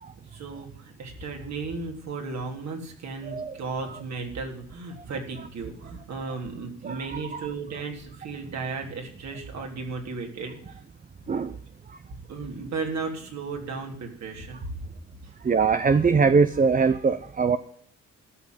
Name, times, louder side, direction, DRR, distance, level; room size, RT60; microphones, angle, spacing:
voice 1, 0.3-10.8 12.3-14.8 15.2-15.3, right 4 dB, 60° right, 2 dB, 3.6 m, -35 dB
voice 2, 3.2-3.6 3.9-4.0 6.8-7.5 11.3-11.6 11.9-12.0 15.4-17.6, right 5 dB, 30° right, 11 dB, 0.7 m, -22 dB
12.5 x 6.2 x 9.4 m, 0.63 s
cardioid pair, 90°, 30 cm